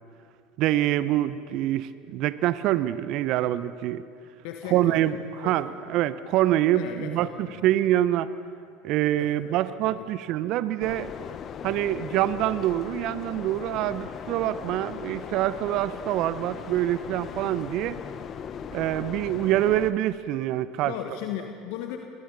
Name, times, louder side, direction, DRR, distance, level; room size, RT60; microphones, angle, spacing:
voice 1, 0.6-4.0 4.7-8.3 8.8-11.1 11.6-18.0 18.7-20.9, right 13 dB, 55° right, 15 dB, 0.7 m, -25 dB
voice 2, 4.4-5.0 5.4-5.9 6.7-7.7 9.1-9.5 9.8-10.0 20.8-22.0, left 10 dB, 65° left, 4 dB, 1.5 m, -37 dB
sound 1, 10.8-19.9, left 8 dB, 40° left, 1.1 m, -38 dB
28.5 x 23.0 x 4.0 m, 2.4 s
hypercardioid pair, 75°, 0 cm